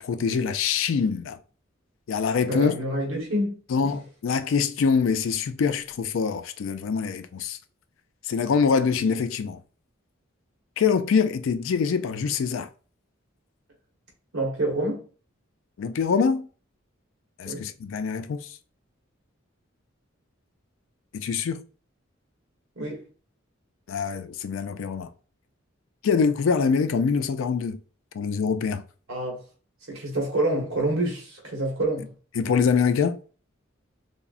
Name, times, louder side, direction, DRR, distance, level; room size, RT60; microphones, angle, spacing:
voice 1, 0.0-1.4 2.1-2.7 3.7-7.6 8.3-9.6 10.8-12.7 15.8-16.5 17.4-18.5 21.1-21.6 23.9-25.1 26.0-27.8 28.1-28.8 32.4-33.2, left 5 dB, 75° left, 0.3 m, -24 dB
voice 2, 2.4-3.9 14.3-15.0 17.5-17.7 22.8-23.0 29.1-29.4 29.9-32.1, right 1 dB, 85° right, 1.1 m, -27 dB
3.7 x 2.0 x 2.4 m
head